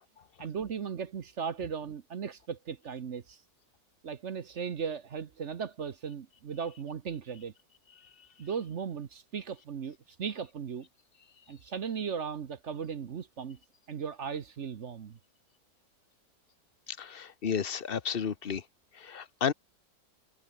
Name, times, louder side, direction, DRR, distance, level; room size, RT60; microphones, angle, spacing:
voice 1, 0.4-3.4 4.0-7.5 8.4-10.9 11.5-13.6 13.9-15.2, right 6 dB, 50° right, 1.1 m, -37 dB
voice 2, 16.9-18.6 19.0-19.5, left 7 dB, 40° left, 1.0 m, -32 dB
omnidirectional pair, 1.9 m